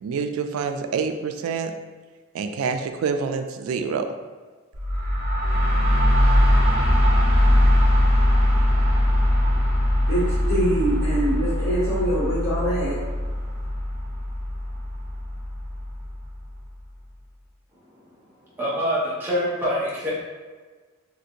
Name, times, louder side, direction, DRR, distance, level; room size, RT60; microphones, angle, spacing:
voice 1, 0.0-1.7 2.3-4.1, right 5 dB, 90° right, 10 dB, 0.3 m, -27 dB
sound 1, 4.7-16.4, left 1 dB, 60° right, 0.9 m, -21 dB
voice 2, 10.1-13.0, right 1 dB, 55° left, -12 dB, 1.1 m, -24 dB
voice 3, 18.6-20.1, equal, 10° right, -8 dB, 0.5 m, -25 dB
3.2 x 2.6 x 2.8 m, 1.4 s
head